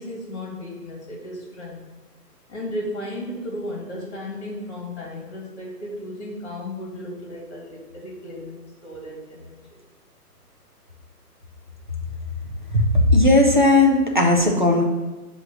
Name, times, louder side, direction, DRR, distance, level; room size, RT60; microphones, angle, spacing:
voice 1, 0.0-1.8 2.5-9.6, left 1 dB, 45° left, -2 dB, 2.3 m, -34 dB
voice 2, 12.7-14.8, left 2 dB, 30° right, 0 dB, 0.5 m, -16 dB
7.4 x 3.2 x 6.1 m, 1.2 s
hypercardioid pair, 170°, 48 cm